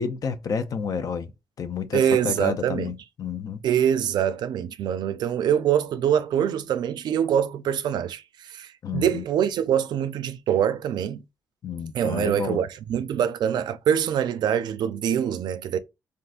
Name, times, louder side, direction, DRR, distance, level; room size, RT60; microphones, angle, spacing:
voice 1, 0.0-1.3 1.6-3.6 8.8-9.2 11.6-12.6, left 6 dB, 55° left, 0.4 m, -30 dB
voice 2, 1.9-2.9 3.6-11.2 11.9-15.8, right 9 dB, 85° right, 0.4 m, -24 dB
3.5 x 2.4 x 2.4 m
cardioid pair, 110°, 7 cm